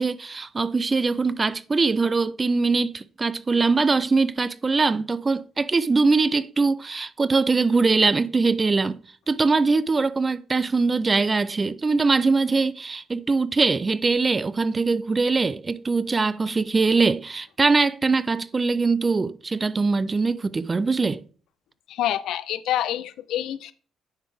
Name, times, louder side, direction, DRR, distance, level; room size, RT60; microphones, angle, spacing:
voice 1, 0.0-9.0 9.3-21.2, right 4 dB, 30° right, 0.3 m, -22 dB
voice 2, 21.9-23.7, left 12 dB, 80° left, 0.4 m, -27 dB
9.4 x 4.0 x 3.3 m
cardioid pair, 90°, 0 cm